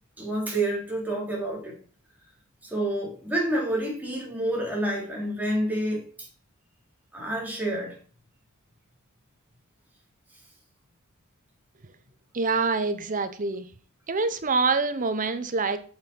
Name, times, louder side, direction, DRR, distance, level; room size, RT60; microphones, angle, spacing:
voice 1, 0.2-1.8 2.6-6.3 7.1-8.0, right 1 dB, 10° right, -3 dB, 3.5 m, -28 dB
voice 2, 12.3-13.7 14.1-15.8, right 4 dB, 40° right, 10 dB, 0.8 m, -25 dB
7.7 x 7.0 x 4.5 m, 0.41 s
head